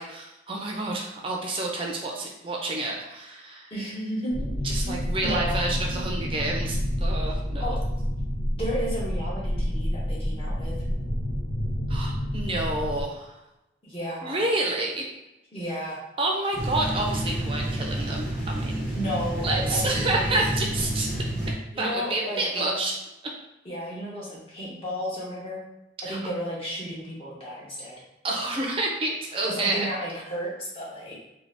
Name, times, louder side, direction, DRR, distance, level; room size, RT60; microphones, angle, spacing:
voice 1, 0.0-3.7 4.6-7.8 11.9-13.3 14.2-15.1 16.2-18.9 19.4-21.1 21.8-22.9 26.0-26.2 28.2-29.9, right 2 dB, 30° right, 0 dB, 0.4 m, -29 dB
voice 2, 3.7-4.5 4.8-5.0 5.2-5.7 7.6-7.8 8.6-10.7 13.8-14.4 15.5-16.0 19.0-20.4 21.7-22.8 23.6-25.6 26.0-28.0 29.4-31.2, equal, 30° left, -5 dB, 0.8 m, -33 dB
sound 1, 4.3-13.0, equal, 85° left, 0.8 m, -28 dB
sound 2, 16.5-21.5, right 1 dB, ahead, 0.7 m, -29 dB
2.6 x 2.4 x 3.3 m, 0.94 s
head